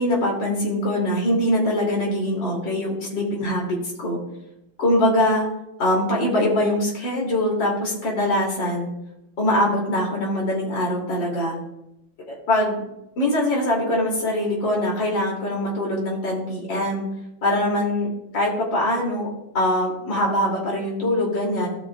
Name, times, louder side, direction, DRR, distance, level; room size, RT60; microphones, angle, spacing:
voice 1, 0.0-4.2 4.8-5.5 5.8-8.9 9.4-11.6 12.3-12.8 13.2-17.0 17.4-18.1 18.3-21.7, left 1 dB, 65° left, -2 dB, 3.2 m, -23 dB
16.0 x 6.2 x 2.2 m, 0.87 s
omnidirectional pair, 2.2 m